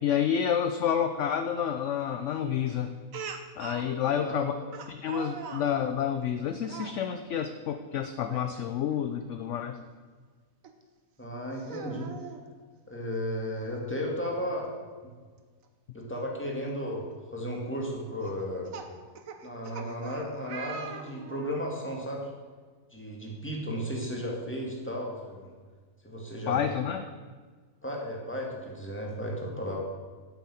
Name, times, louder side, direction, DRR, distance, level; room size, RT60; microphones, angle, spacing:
voice 1, 0.0-3.0 3.6-4.5 4.9-9.8 26.5-27.1, left 8 dB, 65° left, 8 dB, 0.8 m, -29 dB
Speech, 3.1-3.9 4.7-5.7 6.6-7.0 8.2-8.5 8.9-9.0 10.6-10.7 11.5-12.4 13.8-13.9 14.2-14.3 16.2-16.3 16.9-17.1 18.2-21.6, right 5 dB, 60° right, 1.3 m, -42 dB
voice 2, 4.1-4.6 11.2-12.1 12.9-14.7 15.9-17.1 17.3-18.7 19.4-22.3 22.9-25.5 26.0-26.6 27.8-29.8, equal, 5° left, -2 dB, 2.2 m, -34 dB
8.6 x 7.0 x 8.6 m, 1.5 s
omnidirectional pair, 1.7 m